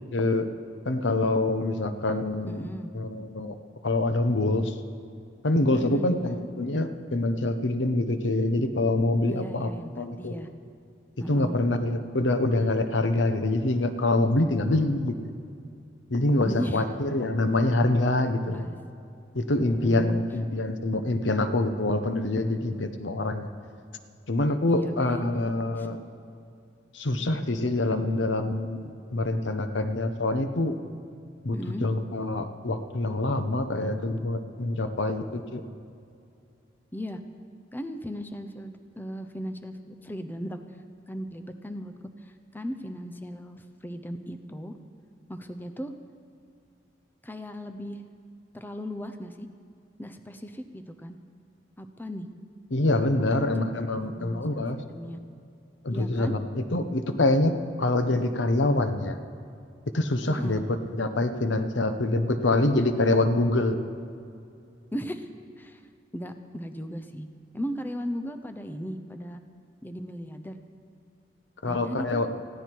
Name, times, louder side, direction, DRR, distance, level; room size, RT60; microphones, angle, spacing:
voice 1, 0.1-0.5 0.8-2.7 2.9-3.5 3.8-4.7 5.4-9.7 10.0-10.3 11.3-15.2 16.1-18.7 19.3-23.5 24.3-26.0 26.9-30.8 31.4-31.6 31.8-35.6 52.7-54.8 55.8-59.2 59.9-63.8 71.6-72.4, left 2 dB, 90° left, 9 dB, 1.0 m, -25 dB
voice 2, 2.5-2.9 5.7-6.4 9.3-10.5 11.2-11.6 16.4-16.8 18.3-18.8 19.6-20.2 24.7-25.3 25.8-25.9 31.5-31.9 36.9-37.2 37.7-40.6 41.1-41.9 42.2-44.8 45.3-45.9 47.2-48.0 48.5-49.5 50.0-51.2 51.8-52.3 53.2-53.5 53.8-55.2 55.9-56.4 60.3-60.6 64.9-65.3 65.6-65.8 66.1-67.3 67.5-69.4 69.8-70.6 71.7-72.2, equal, 10° left, 8 dB, 0.7 m, -37 dB
19.5 x 15.0 x 4.6 m, 2.5 s
head